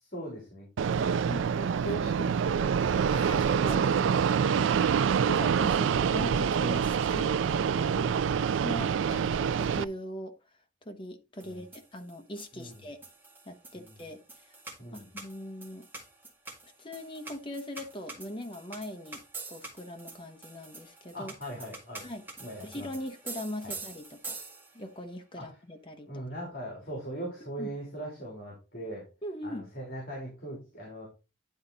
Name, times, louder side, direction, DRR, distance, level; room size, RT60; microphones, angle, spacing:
voice 1, 0.1-3.3 11.4-11.6 12.5-12.7 13.7-13.9 14.8-15.1 21.1-22.0 22.4-22.9 23.6-23.7 25.4-25.5 26.1-29.0 29.4-31.1, right 1 dB, 45° left, -3 dB, 3.5 m, -41 dB
Fixed-wing aircraft airplane, 0.8-9.8, right 7 dB, 75° right, 0.3 m, -26 dB
voice 2, 3.1-4.6 5.3-7.4 8.6-10.3 10.8-13.0 13.5-14.5 14.9-15.9 16.6-19.2 19.5-21.3 22.0-22.2 22.6-24.4 24.7-26.2 27.6-27.7 29.2-29.7, left 1 dB, 25° left, 6 dB, 1.0 m, -40 dB
sound 1, 11.4-24.9, right 3 dB, 10° right, 1.9 m, -46 dB
10.5 x 4.3 x 4.0 m, 0.29 s
head